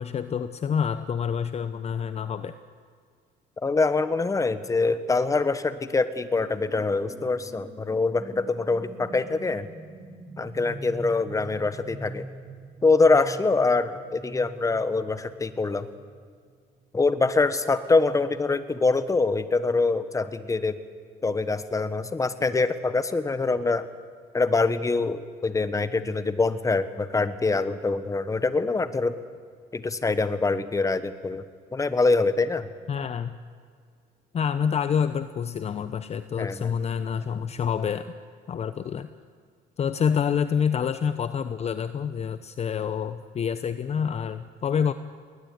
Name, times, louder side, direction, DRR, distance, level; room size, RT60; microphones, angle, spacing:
voice 1, 0.0-2.6 32.9-33.4 34.3-38.1 38.5-39.1 39.8-44.9, left 7 dB, 40° left, 12 dB, 0.8 m, -27 dB
voice 2, 3.6-9.7 10.4-12.3 12.8-15.9 16.9-20.8 21.2-23.8 24.3-29.1 29.7-31.4 31.7-32.7 36.4-36.7, left 3 dB, 20° left, 12 dB, 1.4 m, -24 dB
sound 1, 6.4-16.7, right 2 dB, 30° right, 4.4 m, -44 dB
20.5 x 19.5 x 9.5 m, 2.1 s
cardioid pair, 110°, 17 cm